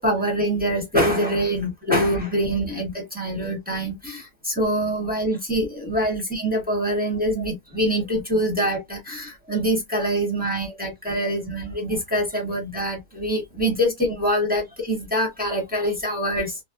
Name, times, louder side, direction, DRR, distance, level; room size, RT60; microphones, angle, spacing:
voice 1, 0.0-16.6, equal, 10° right, 0.5 m, -24 dB
3.4 x 2.0 x 2.3 m
omnidirectional pair, 1.8 m